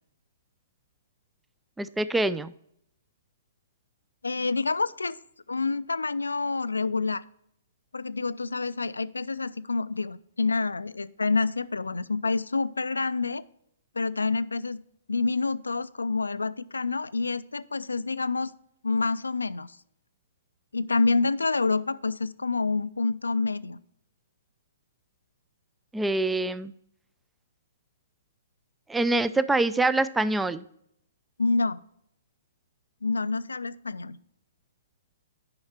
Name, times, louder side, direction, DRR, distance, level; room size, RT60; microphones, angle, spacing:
voice 1, 1.8-2.5 25.9-26.7 28.9-30.6, right 2 dB, 5° right, 16 dB, 0.3 m, -25 dB
voice 2, 4.2-5.2 5.5-7.2 7.9-13.4 14.0-14.8 15.1-18.5 18.8-19.7 20.7-23.8 31.4-31.8 33.0-34.2, left 3 dB, 75° left, 16 dB, 0.4 m, -27 dB
9.5 x 5.6 x 4.3 m, 0.72 s
figure-of-eight pair, 120°, 0 cm